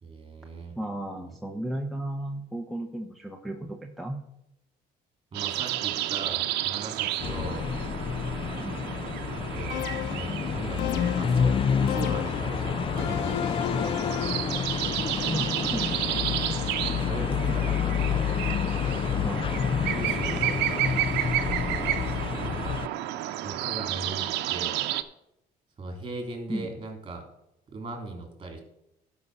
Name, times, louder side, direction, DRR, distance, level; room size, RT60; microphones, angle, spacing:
voice 1, 0.0-0.8 1.2-1.3 5.3-7.7 9.3-13.4 16.9-18.4 19.9-20.9 21.7-22.8 23.4-24.7 25.8-27.2 27.7-28.6, right 2 dB, 30° right, 4 dB, 3.4 m, -39 dB
voice 2, 0.8-4.2 8.6-8.8 15.1-16.2 17.3-17.8 19.2-19.6 26.5-26.7, right 1 dB, ahead, 1 dB, 1.0 m, -35 dB
sound 1, 5.3-25.0, right 14 dB, 90° right, 0.8 m, -32 dB
sound 2, 7.2-22.9, left 8 dB, 30° left, 0.3 m, -29 dB
sound 3, 9.7-10.3 10.8-11.4 11.9-12.5 13.0-14.6, left 11 dB, 90° left, 0.8 m, -34 dB
12.0 x 5.8 x 5.5 m, 0.84 s
cardioid pair, 110°, 17 cm